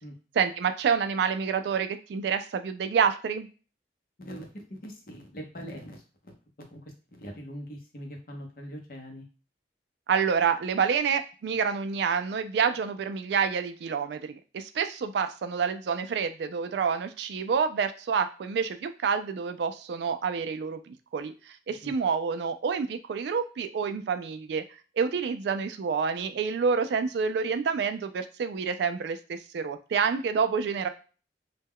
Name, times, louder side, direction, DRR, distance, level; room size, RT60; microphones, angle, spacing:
voice 1, 0.4-3.5 10.1-24.6 25.0-30.9, right 6 dB, 75° right, 9 dB, 0.3 m, -28 dB
voice 2, 4.2-6.3 6.7-9.2 21.7-21.9, equal, 50° left, 2 dB, 0.7 m, -42 dB
2.2 x 2.1 x 3.5 m, 0.36 s
head